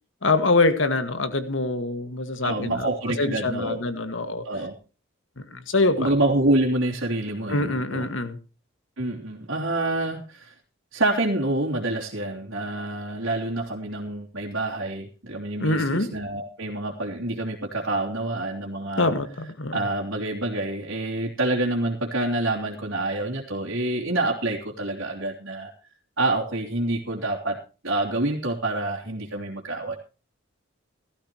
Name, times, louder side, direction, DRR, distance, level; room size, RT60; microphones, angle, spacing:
voice 1, 0.2-4.4 5.4-6.1 7.5-8.4 15.6-16.1 19.0-19.8, left 2 dB, 75° left, 8 dB, 1.8 m, -24 dB
voice 2, 2.4-3.8 4.4-4.7 6.0-8.1 9.0-10.5 10.9-19.1 19.7-25.7 26.2-27.6 27.8-30.0, right 2 dB, 85° right, -4 dB, 3.0 m, -27 dB
17.0 x 14.0 x 3.0 m, 0.34 s
head